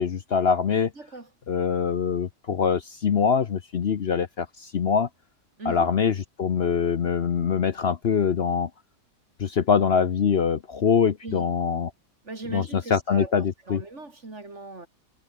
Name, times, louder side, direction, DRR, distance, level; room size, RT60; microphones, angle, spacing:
voice 1, 0.0-0.9 1.5-5.1 5.7-8.7 9.4-11.9 12.5-12.6 12.9-13.8, left 6 dB, 50° left, 1.0 m, -23 dB
voice 2, 1.0-1.3 5.6-5.9 11.2-11.5 12.2-14.9, right 2 dB, 55° right, 4.1 m, -39 dB
omnidirectional pair, 1.5 m